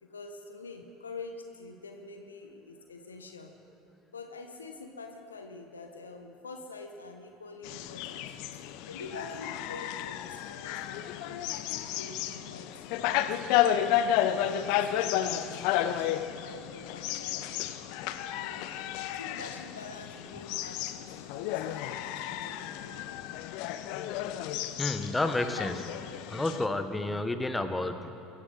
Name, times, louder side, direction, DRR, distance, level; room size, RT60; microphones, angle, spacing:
voice 1, 0.0-3.5 4.1-8.6 8.9-11.5 11.9-17.5 18.4-18.7 19.1-23.2, left 3 dB, 85° left, 5 dB, 1.3 m, -46 dB
sound 1, 7.6-26.7, left 11 dB, 60° left, 0.7 m, -32 dB
voice 2, 24.8-25.9 26.3-28.1, left 2 dB, 10° left, 8 dB, 1.2 m, -30 dB
23.0 x 14.0 x 4.0 m, 2.8 s
figure-of-eight pair, 70°, 0 cm